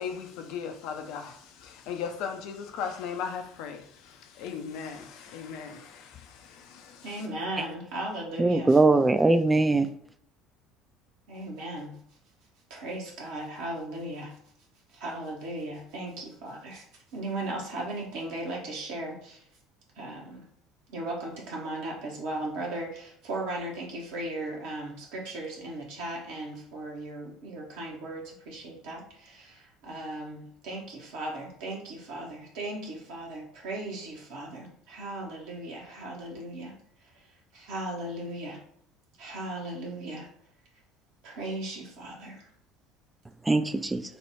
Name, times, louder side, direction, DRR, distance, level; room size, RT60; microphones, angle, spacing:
voice 1, 0.0-7.2, left 6 dB, 60° left, 5 dB, 0.6 m, -37 dB
voice 2, 7.0-8.8 11.3-12.0 12.7-14.4 14.9-16.8 17.1-19.4 20.0-20.4 20.9-36.7 37.0-38.6 39.2-40.3 41.2-42.5, right 1 dB, 60° right, -2 dB, 0.8 m, -37 dB
voice 3, 8.4-9.9 43.5-44.0, right 2 dB, 15° right, 10 dB, 0.3 m, -21 dB
4.3 x 2.2 x 3.3 m, 0.66 s
figure-of-eight pair, 60°, 0 cm